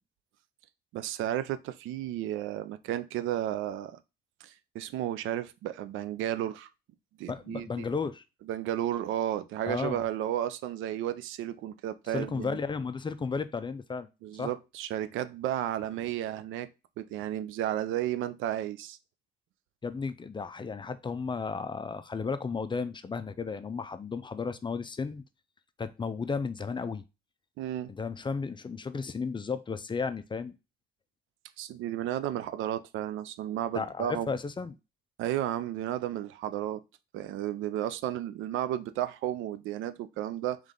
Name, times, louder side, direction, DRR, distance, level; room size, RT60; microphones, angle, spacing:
voice 1, 0.9-4.0 4.4-6.7 7.2-7.9 8.5-12.6 14.2-16.7 17.0-19.0 27.6-27.9 31.6-34.3 35.2-36.8 37.1-40.6, right 12 dB, 90° right, 0.4 m, -33 dB
voice 2, 7.3-8.2 9.6-10.0 12.1-14.1 14.4-14.5 19.8-25.2 25.8-27.0 27.9-30.5 33.7-34.8, left 5 dB, 25° left, 0.4 m, -34 dB
3.6 x 3.2 x 3.7 m
cardioid pair, 90°, 20 cm